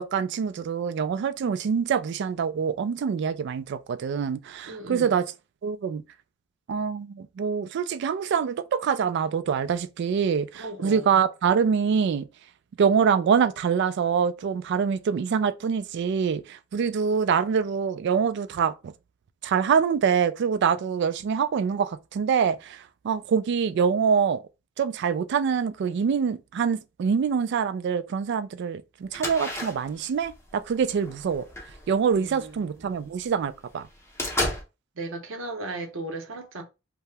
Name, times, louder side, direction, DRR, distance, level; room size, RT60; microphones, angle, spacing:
voice 1, 0.0-5.3 5.6-6.0 6.7-12.3 12.8-18.9 19.4-24.4 24.8-31.4 31.9-33.9, right 6 dB, 60° right, 0.3 m, -25 dB
voice 2, 4.6-5.2 10.5-11.2 32.1-33.0 34.9-36.6, right 2 dB, 75° right, 0.7 m, -36 dB
sound 1, 29.1-32.9 33.4-33.5 33.8-34.6, left 1 dB, 15° left, 0.7 m, -33 dB
2.8 x 2.0 x 3.3 m
head